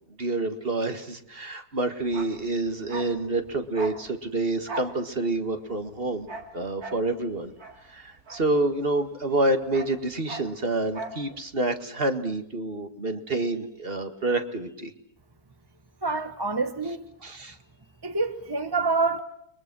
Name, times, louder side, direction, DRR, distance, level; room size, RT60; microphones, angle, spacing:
voice 1, 0.2-6.3 6.5-7.5 7.9-14.9 17.2-17.6, right 2 dB, 35° right, 2.0 m, -28 dB
Bark, 2.0-9.1 9.3-11.3 11.5-11.7, right 3 dB, 70° right, 3.2 m, -41 dB
voice 2, 16.0-17.1 18.0-19.2, right 3 dB, 15° right, 1.2 m, -27 dB
30.0 x 23.0 x 6.2 m
omnidirectional pair, 1.6 m